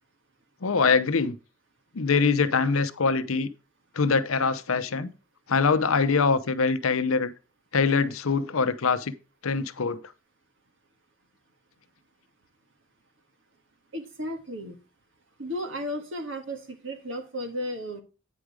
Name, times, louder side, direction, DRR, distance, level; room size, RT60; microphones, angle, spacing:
voice 1, 0.6-1.4 1.9-3.5 3.9-5.1 5.5-7.3 7.7-9.1 9.4-10.0, left 4 dB, 70° left, 0.7 m, -23 dB
voice 2, 13.9-14.8 15.4-18.0, equal, 60° right, 1.6 m, -34 dB
9.2 x 5.0 x 4.8 m
head